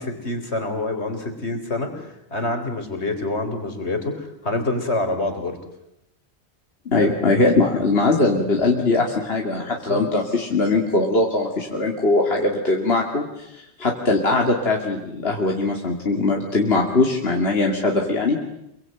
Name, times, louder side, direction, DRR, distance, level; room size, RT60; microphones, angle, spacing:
voice 1, 0.0-5.6 7.0-7.1 9.7-10.0, left 2 dB, 80° left, 6 dB, 4.3 m, -27 dB
voice 2, 6.9-18.4, left 2 dB, 65° left, 1 dB, 2.9 m, -21 dB
27.5 x 23.0 x 9.2 m, 0.83 s
omnidirectional pair, 1.1 m